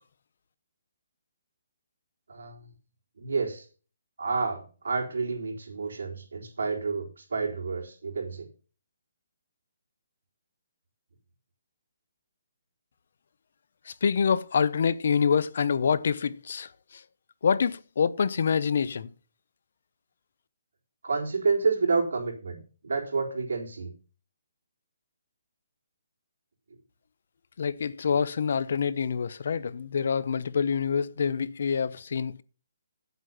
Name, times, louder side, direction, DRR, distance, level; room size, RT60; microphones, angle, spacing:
voice 1, 2.3-2.7 3.2-3.7 4.2-8.4 21.0-23.9, right 4 dB, 75° right, 4.2 m, -29 dB
voice 2, 13.9-16.7 17.4-19.1 27.6-32.4, left 6 dB, 50° left, 0.7 m, -26 dB
9.6 x 8.1 x 5.7 m
hypercardioid pair, 175°, 0 cm